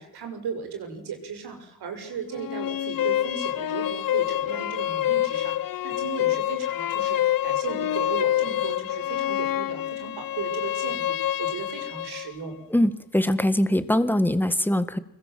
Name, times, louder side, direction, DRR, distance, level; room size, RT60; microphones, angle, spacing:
voice 1, 0.0-12.6, right 6 dB, 85° right, 5 dB, 6.4 m, -36 dB
sound 1, 2.3-12.3, left 12 dB, 65° left, 1.0 m, -27 dB
voice 2, 12.7-15.0, left 1 dB, 5° left, 11 dB, 1.8 m, -22 dB
25.5 x 21.5 x 7.7 m, 0.82 s
cardioid pair, 110°, 37 cm